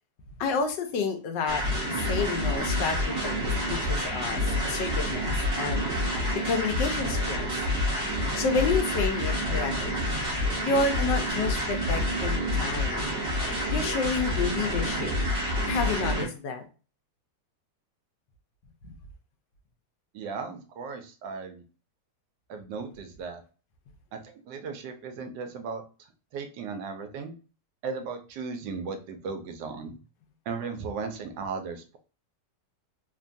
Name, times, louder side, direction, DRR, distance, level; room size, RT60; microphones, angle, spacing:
voice 1, 0.4-5.9 6.4-7.5 8.4-10.1 10.6-13.1 13.7-15.1 15.6-16.6 18.8-18.9, left 4 dB, 90° left, 6 dB, 1.3 m, -30 dB
sound 1, 1.5-16.3, left 1 dB, 45° right, 1.0 m, -28 dB
voice 2, 20.1-21.6 22.5-23.4 24.1-25.8 26.3-27.3 27.8-30.0 30.5-32.0, right 5 dB, 90° right, 7 dB, 1.3 m, -36 dB
3.3 x 2.2 x 2.5 m, 0.36 s
omnidirectional pair, 1.9 m